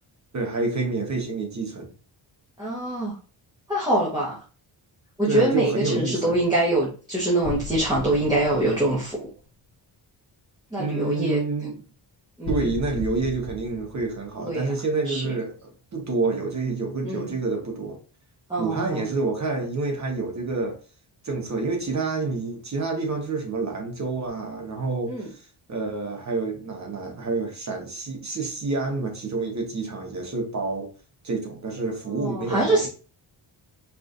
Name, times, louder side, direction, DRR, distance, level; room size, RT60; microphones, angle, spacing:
voice 1, 0.3-1.9 5.3-6.4 10.8-11.8 12.5-18.0 18.6-20.8 21.2-30.9 31.2-32.9, right 3 dB, 35° right, 1.1 m, -28 dB
voice 2, 2.6-3.2 3.7-4.4 5.2-9.3 10.7-11.4 12.4-12.6 14.4-14.7 15.1-15.2 17.0-17.3 18.5-19.0 25.1-25.3 32.1-32.9, right 1 dB, 10° right, 1.1 m, -24 dB
sound 1, 7.4-9.7 12.4-15.0, left 3 dB, 85° left, 1.0 m, -36 dB
4.7 x 3.2 x 2.5 m
wide cardioid pair, 140°, 47 cm